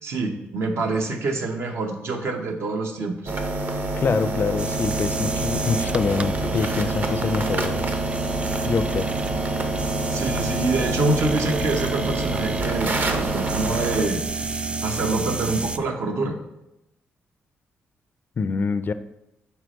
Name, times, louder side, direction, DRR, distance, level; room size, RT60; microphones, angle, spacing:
voice 1, 0.0-3.3 10.1-16.4, right 2 dB, 65° right, 3 dB, 0.9 m, -26 dB
sound 1, 3.3-14.0, right 2 dB, 40° right, 0.7 m, -27 dB
voice 2, 4.0-7.9 8.7-9.1 18.4-18.9, left 5 dB, 45° left, 12 dB, 0.4 m, -25 dB
sound 2, 4.6-15.8, right 4 dB, 25° right, 0.4 m, -30 dB
4.6 x 4.2 x 5.1 m, 0.89 s
cardioid pair, 70°, 5 cm